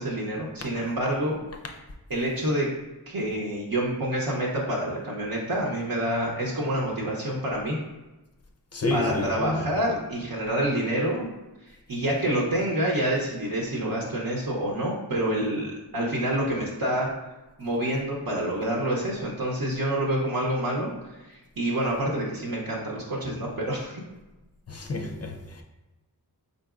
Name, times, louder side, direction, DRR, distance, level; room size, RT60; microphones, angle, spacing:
voice 1, 0.0-1.4 2.1-2.7 3.1-7.8 8.9-11.3 11.9-17.1 17.6-24.0, right 1 dB, 65° right, 0.8 m, -27 dB
voice 2, 8.7-9.7 24.7-25.6, left 1 dB, 40° left, 0.5 m, -29 dB
4.0 x 3.9 x 2.4 m
wide cardioid pair, 90°, 39 cm